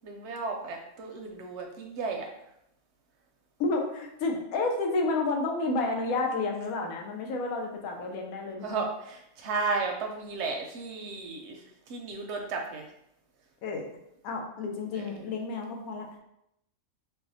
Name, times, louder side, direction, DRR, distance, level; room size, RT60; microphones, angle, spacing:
voice 1, 0.0-2.3 8.6-11.6 11.9-12.8, right 4 dB, 65° right, 2 dB, 0.7 m, -33 dB
voice 2, 3.6-8.8 13.6-13.9 14.2-16.1, left 3 dB, 85° left, 1 dB, 1.1 m, -30 dB
4.5 x 2.1 x 2.7 m, 0.79 s
omnidirectional pair, 1.5 m